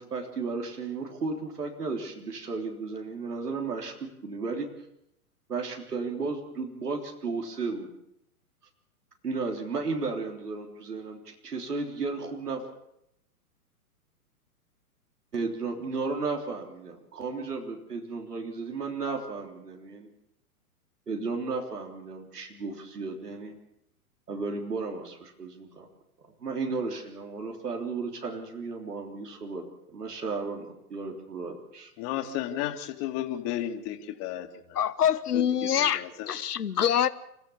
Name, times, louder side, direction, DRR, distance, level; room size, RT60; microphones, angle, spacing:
voice 1, 0.0-4.0 4.2-4.7 5.5-7.9 9.2-12.6 15.3-20.1 21.1-23.5 24.3-25.9 26.4-29.6 29.9-31.9, right 4 dB, 85° right, 3 dB, 3.5 m, -34 dB
voice 2, 32.0-34.8 35.3-36.3, left 12 dB, 35° left, 5 dB, 2.4 m, -33 dB
voice 3, 34.7-37.1, left 9 dB, 80° left, 14 dB, 1.1 m, -25 dB
29.0 x 14.5 x 7.1 m, 0.79 s
hypercardioid pair, 120°, 46 cm